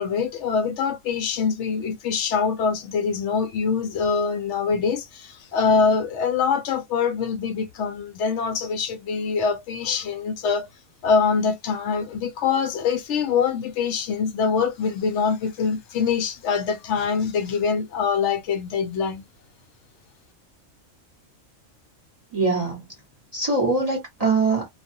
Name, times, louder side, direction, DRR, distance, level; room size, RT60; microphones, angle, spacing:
voice 1, 0.0-10.7 11.0-19.2, left 5 dB, 70° left, 0.8 m, -24 dB
voice 2, 22.3-22.8 23.3-24.7, right 3 dB, 30° right, 1.0 m, -22 dB
2.4 x 2.3 x 2.6 m
omnidirectional pair, 1.4 m